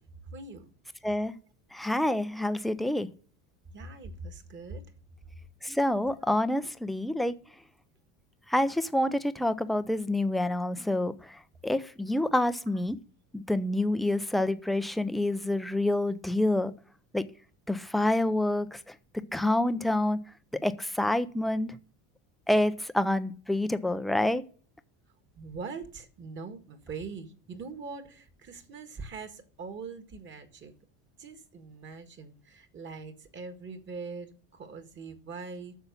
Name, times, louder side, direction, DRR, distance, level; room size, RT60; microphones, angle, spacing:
voice 1, 0.3-0.7 3.7-4.8 25.3-30.7 31.2-35.8, right 4 dB, 30° right, 1.7 m, -42 dB
voice 2, 1.7-3.1 5.6-7.3 8.5-11.2 11.6-13.0 13.3-16.7 17.1-17.2 17.7-18.8 19.3-20.2 20.6-21.8 22.5-24.4, left 1 dB, ahead, 0.4 m, -27 dB
10.0 x 6.9 x 6.9 m
cardioid pair, 160°, 37 cm